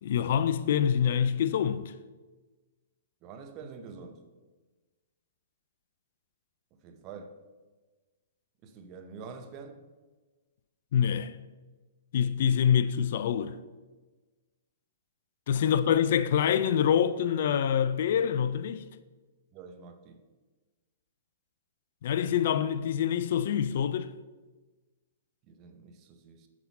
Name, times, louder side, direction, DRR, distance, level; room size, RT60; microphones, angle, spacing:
voice 1, 0.0-1.9 10.9-11.4 12.1-13.6 15.5-18.8 22.0-24.1, left 8 dB, 60° left, 0.4 m, -26 dB
voice 2, 3.2-4.2 6.7-7.4 8.6-9.8 15.6-15.8 19.5-20.2 25.4-26.5, right 5 dB, 35° right, 0.8 m, -46 dB
6.0 x 5.8 x 4.1 m
hypercardioid pair, 125°, 0 cm